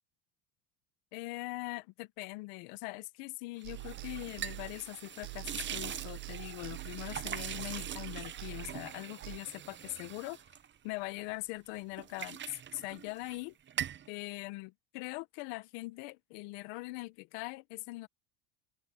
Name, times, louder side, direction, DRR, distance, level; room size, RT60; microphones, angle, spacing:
voice 1, 1.1-10.4 10.8-13.6 14.1-18.1, left 22 dB, 80° left, 1.5 m, -42 dB
sound 1, 3.6-11.4 11.7-13.4 13.7-14.1, right 9 dB, 25° right, 0.7 m, -43 dB
sound 2, 3.6-5.0 5.2-9.4, right 23 dB, 80° right, 1.1 m, -45 dB
open air
supercardioid pair, 105°, 44 cm